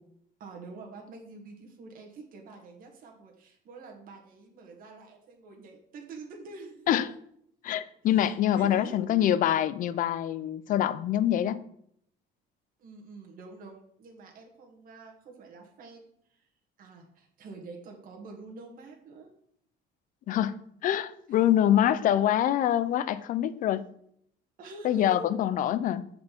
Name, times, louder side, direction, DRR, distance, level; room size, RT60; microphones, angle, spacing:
voice 1, 0.4-7.0 8.2-9.3 12.8-16.5 16.8-19.3 21.3-21.4 24.6-25.3, right 3 dB, 50° right, 1 dB, 1.5 m, -46 dB
voice 2, 7.6-11.6 20.3-20.6 20.8-23.9 24.8-26.0, left 11 dB, 45° left, 15 dB, 0.4 m, -25 dB
7.4 x 4.3 x 4.4 m, 0.69 s
cardioid pair, 145°, 18 cm